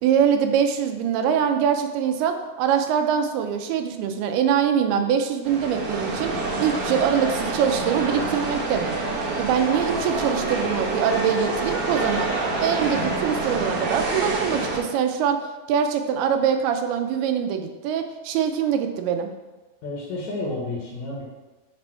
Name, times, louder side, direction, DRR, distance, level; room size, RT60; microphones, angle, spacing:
voice 1, 0.0-6.3 6.6-9.0 9.4-12.3 12.6-15.4 15.7-19.3, right 8 dB, 90° right, 6 dB, 2.6 m, -23 dB
sound 1, 5.4-14.8, right 2 dB, 65° right, 1.4 m, -27 dB
voice 2, 19.8-21.2, left 2 dB, 60° left, -3 dB, 2.2 m, -30 dB
10.5 x 3.5 x 4.4 m, 1.2 s
omnidirectional pair, 4.4 m